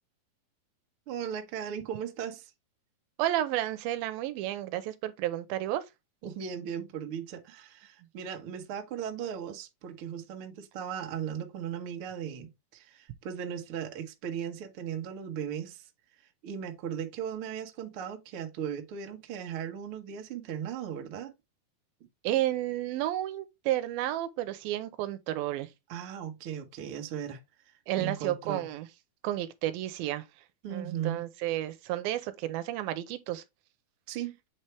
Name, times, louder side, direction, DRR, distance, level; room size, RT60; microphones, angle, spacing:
voice 1, 1.1-2.5 6.2-15.9 16.4-21.3 25.9-27.4 28.0-28.7 30.6-31.2 34.1-34.4, right 8 dB, 60° right, 1.5 m, -37 dB
voice 2, 3.2-5.8 22.2-25.7 27.9-28.9 29.2-30.2 30.7-33.4, right 14 dB, 85° right, 2.5 m, -31 dB
8.2 x 4.3 x 3.3 m
omnidirectional pair, 4.2 m